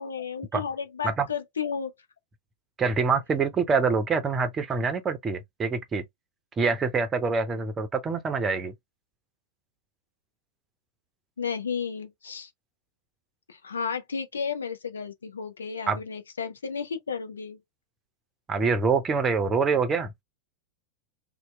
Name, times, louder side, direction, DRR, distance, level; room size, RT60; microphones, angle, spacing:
voice 1, 0.0-1.9 11.4-12.5 13.5-17.6, left 6 dB, 70° left, 0.5 m, -33 dB
voice 2, 2.8-6.0 6.6-8.7 15.9-16.0 18.5-20.1, right 5 dB, 20° right, 0.6 m, -25 dB
2.8 x 2.0 x 3.0 m
figure-of-eight pair, 90°, 0 cm